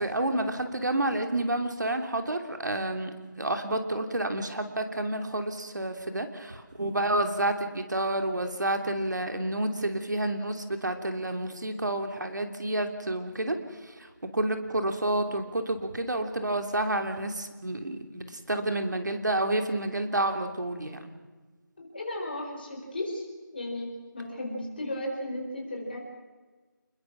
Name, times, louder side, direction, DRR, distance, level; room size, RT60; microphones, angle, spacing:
voice 1, 0.0-3.1 3.4-13.6 13.8-14.1 14.3-21.1, right 1 dB, 60° right, 6 dB, 2.9 m, -29 dB
voice 2, 21.8-23.3 23.5-26.0, left 1 dB, 25° left, 0 dB, 4.4 m, -35 dB
29.0 x 21.5 x 6.1 m, 1.3 s
figure-of-eight pair, 175°, 11 cm